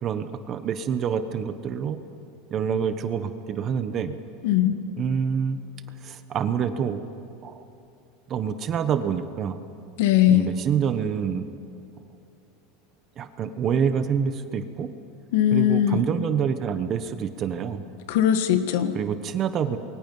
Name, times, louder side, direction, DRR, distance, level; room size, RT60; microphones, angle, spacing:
voice 1, 0.0-2.0 2.5-4.1 5.0-5.6 6.0-7.0 7.4-7.7 8.3-9.6 10.3-11.5 13.2-14.9 15.5-17.9 18.9-19.8, right 7 dB, 30° right, 10 dB, 1.0 m, -27 dB
voice 2, 4.4-4.7 10.0-10.5 15.3-16.0 18.1-19.0, left 11 dB, 70° left, 9 dB, 1.6 m, -20 dB
28.5 x 23.0 x 5.5 m, 2.6 s
supercardioid pair, 160°, 0 cm